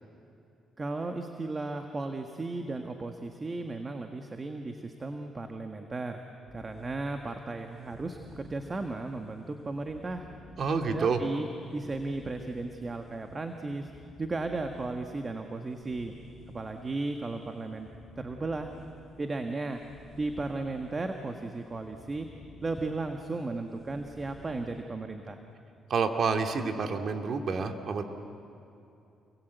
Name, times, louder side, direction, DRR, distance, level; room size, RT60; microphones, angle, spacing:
voice 1, 0.8-6.2 6.5-10.3 10.9-13.9 14.2-16.1 16.5-17.9 18.2-18.7 19.2-19.8 20.2-22.3 22.6-25.4, right 3 dB, 30° right, 5 dB, 1.6 m, -35 dB
sound 1, 6.5-24.8, left 2 dB, ahead, 6.0 m, -54 dB
voice 2, 10.6-11.2 25.9-28.0, right 5 dB, 55° right, 5 dB, 2.3 m, -28 dB
29.0 x 23.5 x 8.2 m, 2.7 s
cardioid pair, 90°, 0 cm